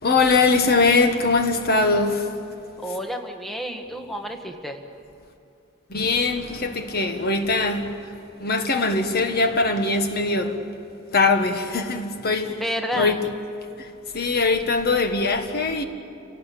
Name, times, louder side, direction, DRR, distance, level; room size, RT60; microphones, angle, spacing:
voice 1, 0.0-2.3 5.9-8.1 8.4-10.6 11.1-12.6 12.9-13.2 13.8-13.9 14.1-15.8, left 3 dB, 50° left, 1.5 m, -21 dB
voice 2, 2.8-4.8 12.6-13.2, equal, ahead, 1.5 m, -30 dB
29.5 x 18.0 x 8.5 m
head